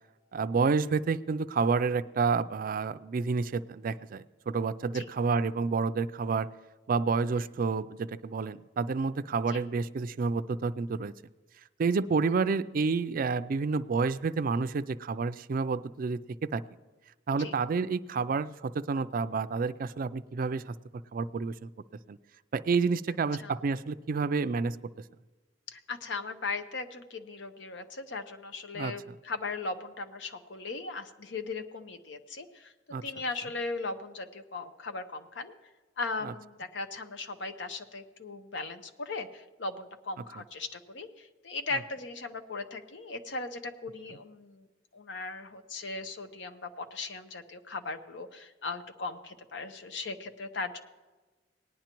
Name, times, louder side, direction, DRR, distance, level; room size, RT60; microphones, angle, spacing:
voice 1, 0.3-6.5 6.9-11.1 11.8-16.6 17.3-20.7 21.1-21.7 22.1-22.2 22.5-24.8 28.7-29.2 32.9-33.0 36.2-36.3, right 4 dB, 50° right, 13 dB, 0.4 m, -29 dB
voice 2, 25.7-32.7 33.0-35.5 36.0-44.6 44.9-50.8, left 3 dB, 75° left, 9 dB, 0.8 m, -38 dB
18.5 x 10.5 x 3.0 m, 1.2 s
head